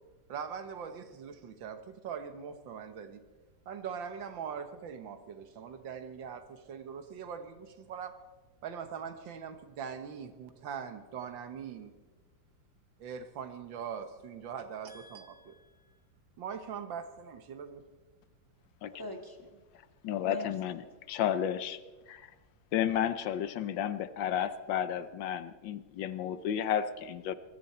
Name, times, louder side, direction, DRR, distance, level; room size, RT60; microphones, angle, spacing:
voice 1, 0.3-3.2 3.7-8.1 8.6-11.9 13.0-15.5 16.4-17.8, right 7 dB, 80° right, 9 dB, 1.9 m, -42 dB
voice 2, 14.9-16.0 18.9-19.6 20.2-20.5, left 2 dB, 10° left, 3 dB, 1.7 m, -45 dB
voice 3, 20.0-20.8 21.1-21.8 22.1-22.3 22.7-27.4, left 9 dB, 80° left, 13 dB, 1.5 m, -32 dB
22.0 x 14.0 x 4.3 m, 1.3 s
omnidirectional pair, 2.1 m